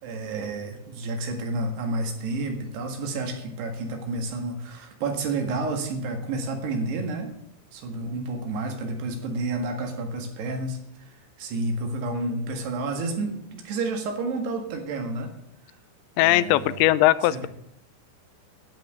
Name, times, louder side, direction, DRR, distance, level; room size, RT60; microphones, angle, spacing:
voice 1, 0.0-7.3 7.7-10.8 11.4-15.3 16.2-16.9 17.3-17.5, right 2 dB, 70° right, 4 dB, 3.8 m, -30 dB
voice 2, 16.2-17.5, left 16 dB, 90° left, 16 dB, 2.9 m, -20 dB
10.5 x 9.4 x 6.4 m, 0.75 s
omnidirectional pair, 5.0 m